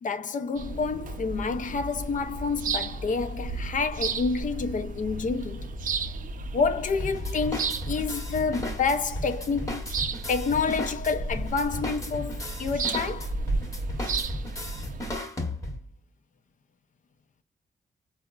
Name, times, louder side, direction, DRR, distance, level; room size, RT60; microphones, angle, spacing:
voice 1, 0.0-5.8 6.5-9.8 10.3-13.3, left 4 dB, 55° left, 0.5 m, -28 dB
sound 1, 0.6-15.2, right 3 dB, 60° right, 0.4 m, -33 dB
sound 2, 7.0-15.9, left 1 dB, 20° left, 0.9 m, -36 dB
3.8 x 2.0 x 2.2 m
cardioid pair, 70°, 16 cm